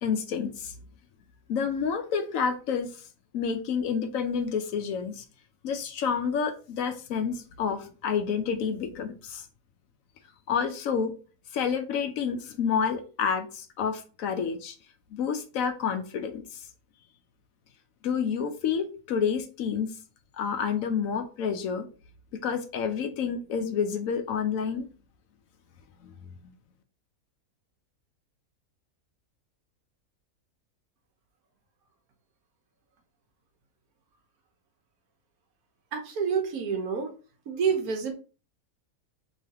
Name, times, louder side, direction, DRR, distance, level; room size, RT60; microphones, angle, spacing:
voice 1, 0.0-0.7 1.5-3.0 3.3-5.2 5.6-9.5 10.5-11.1 11.5-14.8 15.1-16.6 18.0-19.9 20.4-21.9 22.4-24.9 26.0-26.1, left 6 dB, 70° left, 8 dB, 1.0 m, -29 dB
voice 2, 35.9-37.1 37.5-38.1, right 6 dB, 80° right, 4 dB, 1.4 m, -28 dB
4.9 x 3.1 x 2.8 m, 0.37 s
omnidirectional pair, 1.5 m